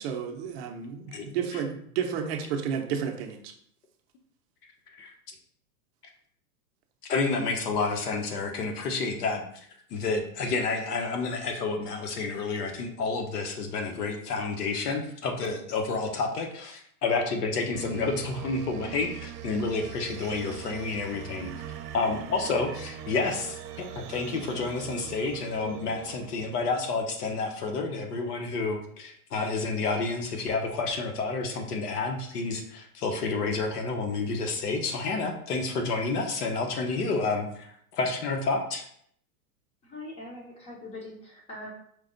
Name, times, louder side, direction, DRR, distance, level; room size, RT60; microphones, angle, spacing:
voice 1, 0.0-3.5, right 7 dB, 45° right, 4 dB, 0.6 m, -32 dB
voice 2, 7.0-9.7 9.9-21.5 21.9-23.6 23.9-38.8, left 3 dB, 90° left, 4 dB, 1.1 m, -30 dB
sound 1, 17.7-27.2, right 10 dB, 80° right, 0.7 m, -41 dB
voice 3, 39.8-41.7, left 2 dB, 15° left, -1 dB, 0.8 m, -42 dB
5.0 x 2.3 x 3.8 m, 0.65 s
supercardioid pair, 150°, 45 cm